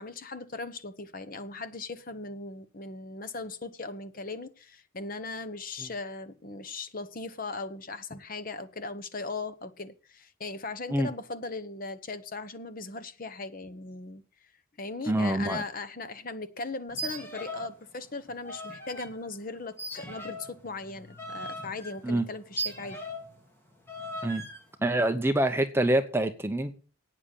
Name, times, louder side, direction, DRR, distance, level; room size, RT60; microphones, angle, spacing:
voice 1, 0.0-14.2 14.8-23.0, left 3 dB, 40° left, 1.0 m, -38 dB
voice 2, 15.1-15.6 22.0-22.2 24.2-24.4 24.8-26.7, right 1 dB, 10° right, 0.8 m, -26 dB
sound 1, 16.9-17.8 18.0-19.1 19.8-23.4 23.9-24.6, right 1 dB, 10° left, 2.0 m, -38 dB
8.9 x 7.4 x 8.3 m
head